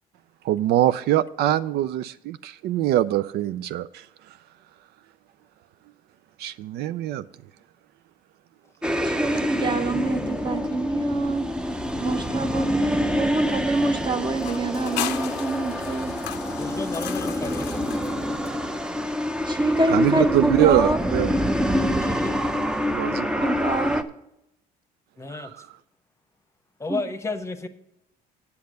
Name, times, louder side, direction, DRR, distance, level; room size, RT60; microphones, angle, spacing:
voice 1, 0.4-4.1 6.4-7.2 19.9-21.3 22.9-23.4 25.3-25.7, right 13 dB, 75° right, 0.4 m, -23 dB
sound 1, 8.8-24.0, equal, 5° right, 0.6 m, -27 dB
voice 2, 9.0-11.5 12.0-16.1 19.4-21.0 23.4-24.1 26.9-27.0, right 2 dB, 25° right, 1.0 m, -25 dB
sound 2, 14.4-18.9, left 12 dB, 90° left, 0.6 m, -36 dB
voice 3, 16.6-17.7 22.0-22.4 25.2-25.5 26.8-27.7, left 3 dB, 15° left, 0.9 m, -32 dB
8.5 x 7.0 x 6.4 m
cardioid pair, 110°, 17 cm